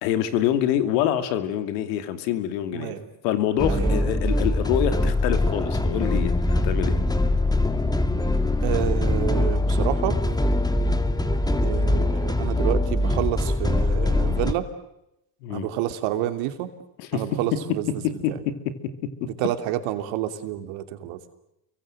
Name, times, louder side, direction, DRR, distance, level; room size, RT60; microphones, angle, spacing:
voice 1, 0.0-2.9 3.2-7.0 15.4-15.7 17.0-17.2 18.2-18.3, left 11 dB, 75° left, 10 dB, 2.7 m, -25 dB
voice 2, 2.7-3.0 3.7-4.1 8.6-10.2 11.6-14.7 15.5-16.7 17.1-18.2 19.2-21.2, right 13 dB, 70° right, 8 dB, 3.1 m, -29 dB
sound 1, 3.6-14.5, left 1 dB, 10° left, 2.4 m, -23 dB
29.5 x 23.5 x 7.8 m, 0.83 s
hypercardioid pair, 70°, 50 cm